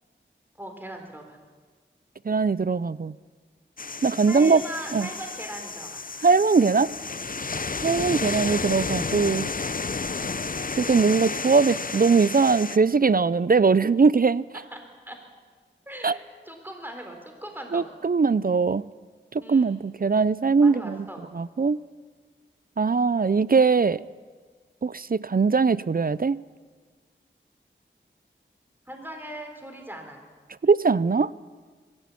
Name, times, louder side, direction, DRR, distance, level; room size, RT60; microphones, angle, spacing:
voice 1, 0.6-1.4 4.3-6.0 8.1-8.2 14.7-14.8 15.1-15.2 15.9-17.9 19.4-19.8 20.6-21.3 28.9-30.2, right 1 dB, 10° right, 4 dB, 4.0 m, -39 dB
voice 2, 2.3-3.1 4.0-4.6 4.9-5.1 6.2-6.9 7.8-9.5 10.7-14.4 16.0-16.2 17.7-18.8 19.5-21.0 21.3-21.8 22.8-24.0 24.8-26.4 30.6-31.3, right 4 dB, 45° right, 19 dB, 0.5 m, -21 dB
sound 1, 3.8-12.8, left 4 dB, 45° left, 0.7 m, -32 dB
22.5 x 13.5 x 8.5 m, 1.5 s
wide cardioid pair, 40°, 20 cm